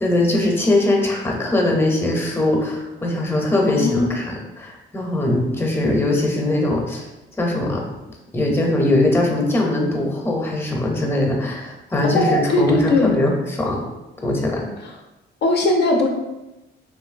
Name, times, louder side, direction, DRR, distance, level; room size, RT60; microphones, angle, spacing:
voice 1, 0.0-7.1 7.4-7.8 8.3-13.8 14.2-14.7, left 1 dB, 10° left, 0 dB, 0.6 m, -21 dB
voice 2, 12.0-13.1 15.4-16.1, left 2 dB, 55° left, 1 dB, 0.4 m, -18 dB
2.9 x 2.6 x 2.5 m, 1.0 s
cardioid pair, 90°, 20 cm